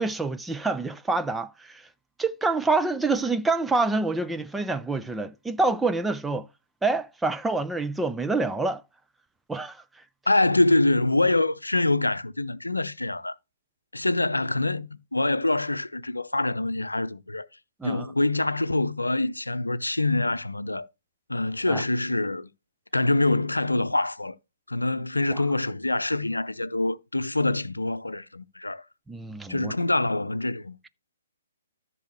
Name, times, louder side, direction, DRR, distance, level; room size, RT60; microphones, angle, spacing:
voice 1, 0.0-1.9 2.2-6.5 6.8-8.8 9.5-9.8 17.8-18.1 21.7-21.8 25.3-25.4 29.1-29.7, right 3 dB, 5° right, 0.4 m, -27 dB
voice 2, 10.3-13.3 13.9-17.5 17.8-20.9 21.3-22.5 22.9-24.4 24.7-28.8 29.5-30.8, left 2 dB, 80° left, 0.6 m, -25 dB
14.0 x 6.1 x 3.0 m
figure-of-eight pair, 125°, 0 cm